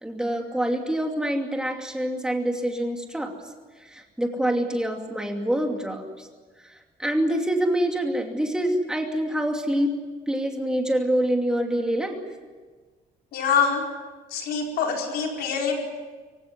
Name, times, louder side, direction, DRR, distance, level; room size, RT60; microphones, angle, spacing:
voice 1, 0.0-3.3 3.8-6.3 6.7-9.9 10.3-12.2, right 1 dB, 5° right, 2 dB, 2.6 m, -26 dB
voice 2, 13.3-13.8 14.3-15.8, left 6 dB, 75° left, 1 dB, 4.8 m, -24 dB
25.0 x 16.5 x 9.8 m, 1.4 s
cardioid pair, 180°, 17 cm